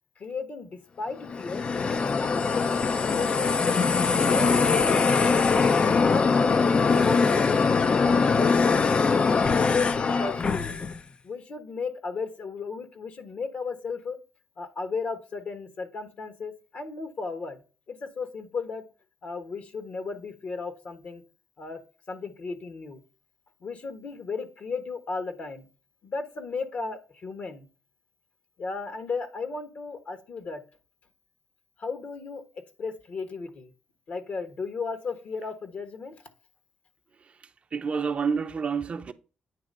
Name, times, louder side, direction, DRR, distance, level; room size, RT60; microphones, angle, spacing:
voice 1, 0.2-3.9 4.3-7.7 8.0-8.8 9.3-10.8 11.2-14.2 14.6-17.6 17.9-18.8 19.2-21.2 21.6-21.8 22.1-23.0 23.6-25.7 26.0-27.7 28.6-30.6 31.8-32.4 32.8-33.7 34.1-36.1, left 4 dB, 55° left, 1.4 m, -35 dB
sound 1, 1.2-11.0, left 4 dB, 35° left, 0.5 m, -22 dB
voice 2, 37.7-39.1, right 5 dB, 40° right, 0.6 m, -28 dB
9.1 x 3.3 x 5.3 m
cardioid pair, 95°, 3 cm